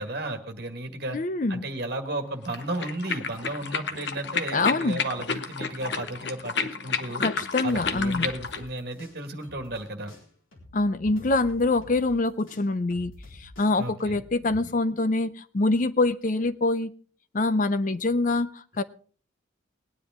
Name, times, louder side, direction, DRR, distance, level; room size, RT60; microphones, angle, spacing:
voice 1, 0.0-1.2 1.5-7.2 7.6-10.1 13.8-14.2, right 1 dB, 50° right, 6 dB, 1.8 m, -34 dB
voice 2, 1.1-1.6 4.5-5.0 7.2-8.3 10.7-13.1 13.4-16.9 17.3-18.8, left 2 dB, 40° left, 14 dB, 0.5 m, -25 dB
sound 1, 2.5-8.6, left 5 dB, 60° left, 1.0 m, -31 dB
sound 2, 7.7-9.8 10.1-14.6, left 1 dB, 80° left, 4.1 m, -47 dB
19.5 x 10.0 x 3.6 m, 0.42 s
head